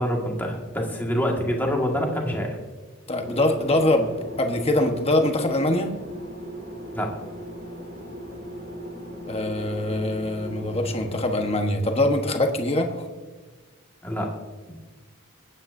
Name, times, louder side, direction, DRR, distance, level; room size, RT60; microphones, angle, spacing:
voice 1, 0.0-2.6 6.9-7.1 14.0-14.3, equal, 10° left, -1 dB, 1.8 m, -26 dB
voice 2, 3.1-4.1 4.4-5.9 9.3-13.1, left 1 dB, 25° left, 4 dB, 1.2 m, -23 dB
sound 1, 3.2-11.6, equal, 40° right, 3.9 m, -38 dB
25.5 x 9.0 x 2.7 m, 1.4 s
head